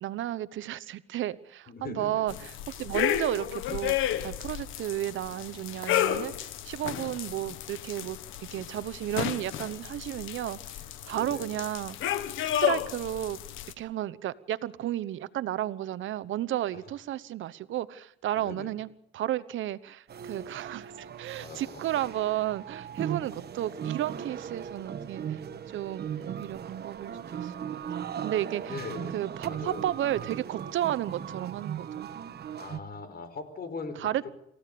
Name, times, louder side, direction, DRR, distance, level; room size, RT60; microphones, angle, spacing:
voice 1, 0.0-10.8 11.0-13.4 13.8-25.4 25.7-27.8 28.2-28.8 29.1-32.1 34.0-34.3, right 13 dB, 75° right, 16 dB, 1.0 m, -33 dB
voice 2, 1.7-2.2 11.1-11.5 18.4-18.7 21.4-21.8 28.6-29.9 32.6-34.3, left 4 dB, 50° left, 11 dB, 5.0 m, -40 dB
sound 1, 2.3-13.7, left 11 dB, 90° left, 1.6 m, -32 dB
sound 2, 20.1-32.8, right 8 dB, 55° right, 1.5 m, -38 dB
28.0 x 15.5 x 6.8 m, 0.78 s
cardioid pair, 90°, 20 cm